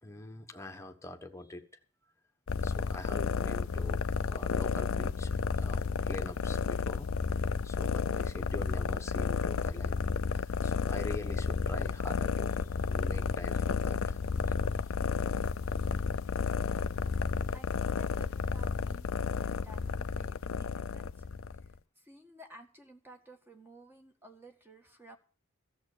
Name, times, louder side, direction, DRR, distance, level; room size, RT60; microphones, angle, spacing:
voice 1, 0.0-1.6 2.6-10.0 10.3-14.2 14.5-14.6, left 2 dB, 15° left, 4 dB, 1.3 m, -45 dB
sound 1, 2.5-21.7, left 5 dB, 65° left, 0.5 m, -32 dB
voice 2, 16.4-16.9 17.1-21.3 22.0-25.2, right 1 dB, 10° right, 4 dB, 1.7 m, -54 dB
13.5 x 7.6 x 6.7 m, 0.42 s
head